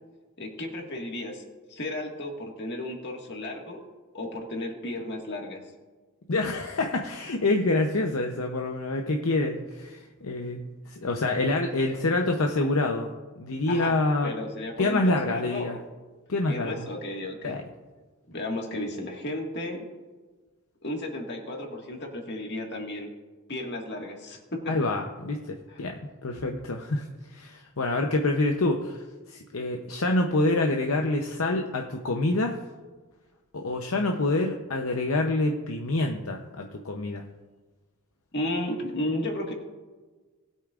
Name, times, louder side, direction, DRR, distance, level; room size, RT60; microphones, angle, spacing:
voice 1, 0.4-1.4 1.7-3.8 4.1-5.6 13.7-13.9 14.2-15.8 16.5-17.6 18.3-19.8 20.8-23.1 23.5-24.7 25.7-25.8 38.3-39.5, left 1 dB, 50° left, 1 dB, 1.8 m, -33 dB
voice 2, 6.3-13.1 13.4-14.3 14.8-15.8 16.3-16.9 17.4-17.6 24.7-26.0 26.2-27.0 27.3-29.0 29.3-32.5 33.5-37.2, left 2 dB, 70° left, 3 dB, 0.7 m, -27 dB
19.5 x 8.3 x 2.5 m, 1.3 s
head